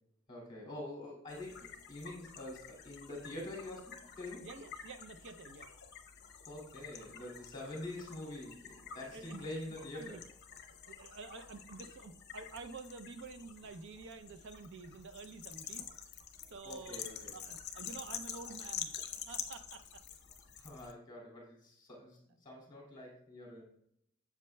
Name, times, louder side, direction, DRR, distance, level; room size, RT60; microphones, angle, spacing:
voice 1, 0.3-4.5 6.5-10.2 16.6-17.4 20.6-23.6, left 1 dB, 20° left, -3 dB, 2.3 m, -46 dB
sound 1, 1.3-20.9, left 8 dB, 50° left, 0.8 m, -48 dB
voice 2, 4.4-5.7 9.0-9.4 9.9-10.2 10.7-15.9 16.5-17.0 17.3-18.9 19.3-19.8, right 4 dB, 60° right, 10 dB, 0.5 m, -49 dB
8.3 x 7.4 x 2.2 m, 0.73 s
head